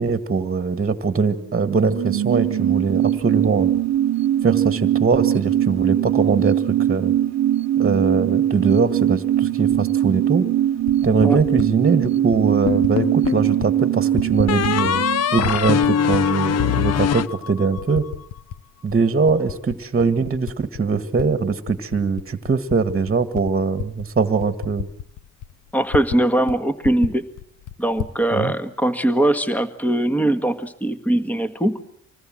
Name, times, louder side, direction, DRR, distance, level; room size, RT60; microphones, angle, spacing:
voice 1, 0.0-3.7 4.4-7.1 7.8-10.5 11.0-15.0 15.3-18.1 18.8-24.9 28.3-28.5, right 4 dB, 30° right, 11 dB, 1.8 m, -21 dB
sound 1, 1.4-16.6 16.9-17.0, right 12 dB, 60° right, 1.1 m, -21 dB
Typing, 9.7-9.8 10.7-11.7 12.3-12.9 13.2-13.7 14.0-15.1 15.4-16.6 17.1-17.2 17.8-18.6 18.9-21.3 21.6-26.2 26.5-26.6 26.8-28.2, left 11 dB, 80° left, 1.1 m, -33 dB
sound 2, 12.7-13.5 14.5-18.0, left 8 dB, 55° left, 0.9 m, -22 dB
voice 2, 25.7-27.2 27.8-31.8, right 1 dB, 5° left, 10 dB, 1.8 m, -21 dB
26.0 x 19.5 x 7.7 m, 0.66 s
cardioid pair, 90°, 30 cm